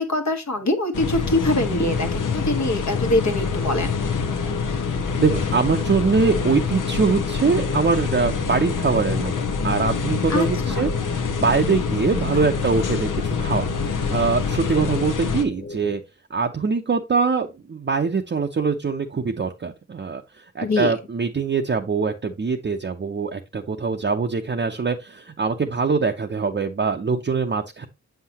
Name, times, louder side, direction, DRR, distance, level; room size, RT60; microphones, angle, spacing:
voice 1, 0.0-3.9 10.3-10.9 20.6-20.9, left 1 dB, 60° left, 1.2 m, -23 dB
sound 1, 0.9-15.4, left 5 dB, 85° left, 0.7 m, -26 dB
sound 2, 1.8-16.0, left 3 dB, 30° left, 0.4 m, -36 dB
voice 2, 5.2-16.0 16.3-27.9, right 5 dB, 35° right, 0.6 m, -23 dB
7.2 x 5.7 x 2.8 m
wide cardioid pair, 60°, 31 cm